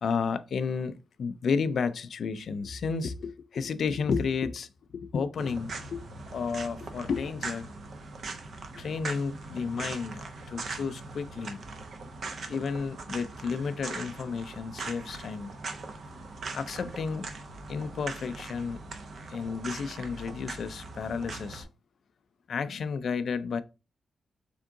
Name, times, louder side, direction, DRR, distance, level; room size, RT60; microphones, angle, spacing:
voice 1, 0.0-4.7 4.9-6.0 6.3-7.7 8.7-11.6 12.5-15.5 16.5-17.3 17.7-18.8 19.3-21.7 22.5-23.6, left 5 dB, 55° left, 0.3 m, -32 dB
sound 1, 5.4-21.6, right 3 dB, 50° right, 0.6 m, -41 dB
3.7 x 3.5 x 3.6 m
wide cardioid pair, 160°, 0 cm